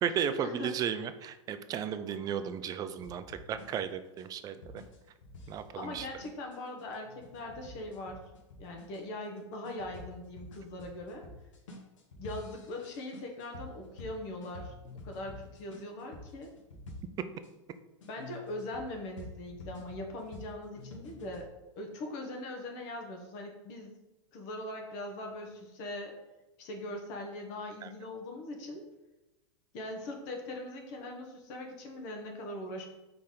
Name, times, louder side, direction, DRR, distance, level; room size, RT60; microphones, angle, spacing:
voice 1, 0.0-4.8 5.5-6.1 27.8-27.9, right 8 dB, 25° right, 11 dB, 0.3 m, -34 dB
sound 1, 3.0-17.5 18.0-21.5, left 3 dB, 85° left, 1.0 m, -49 dB
voice 2, 5.7-8.2 8.6-11.2 12.2-14.7 15.0-16.5 18.1-21.5 21.8-23.9 24.3-26.2 26.6-28.8 29.7-32.8, left 1 dB, 50° left, 2 dB, 1.0 m, -41 dB
4.1 x 3.3 x 3.7 m, 1.0 s
hypercardioid pair, 115°, 16 cm